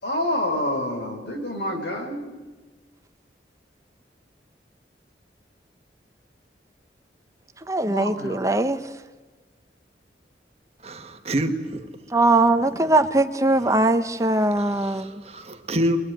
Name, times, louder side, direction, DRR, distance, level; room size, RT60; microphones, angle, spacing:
voice 1, 0.0-2.2 7.8-8.4, left 1 dB, 80° left, 2 dB, 6.3 m, -27 dB
voice 2, 7.7-8.8 12.1-15.2, right 2 dB, 15° right, 9 dB, 0.8 m, -21 dB
voice 3, 10.8-11.9 14.6-16.0, right 1 dB, 35° right, 6 dB, 1.8 m, -27 dB
23.0 x 21.5 x 9.3 m, 1.3 s
head